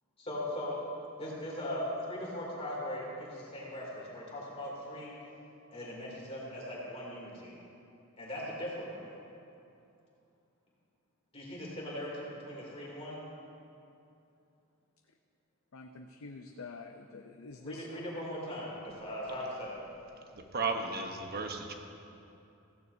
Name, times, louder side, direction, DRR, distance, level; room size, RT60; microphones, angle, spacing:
voice 1, 0.2-0.8 1.2-5.2 5.7-7.5 8.2-9.0 11.3-13.2 17.6-19.8, left 1 dB, 30° left, -5 dB, 2.8 m, -39 dB
voice 2, 15.7-17.9, left 3 dB, 80° left, 3 dB, 0.6 m, -46 dB
voice 3, 20.5-21.7, right 4 dB, 50° right, 3 dB, 1.1 m, -34 dB
16.0 x 15.5 x 2.7 m, 2.7 s
head